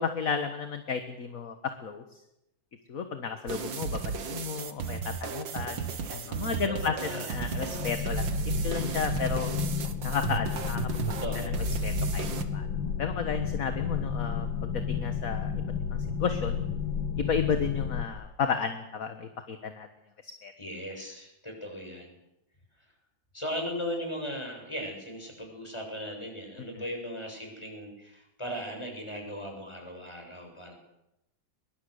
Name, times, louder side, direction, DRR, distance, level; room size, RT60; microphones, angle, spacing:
voice 1, 0.0-1.6 1.8-2.0 2.9-9.5 10.0-10.9 11.8-12.3 12.5-12.7 13.0-15.5 15.9-16.6 17.2-19.9 20.2-20.5, left 6 dB, 50° left, 8 dB, 1.8 m, -33 dB
sound 1, 3.5-12.4, right 5 dB, 75° right, 2.3 m, -34 dB
voice 2, 6.2-7.3 11.0-11.5 20.6-22.2 23.3-30.7, equal, 15° left, 2 dB, 7.2 m, -38 dB
sound 2, 7.3-18.1, left 6 dB, 85° left, 2.4 m, -32 dB
23.0 x 23.0 x 8.2 m, 0.88 s
omnidirectional pair, 2.1 m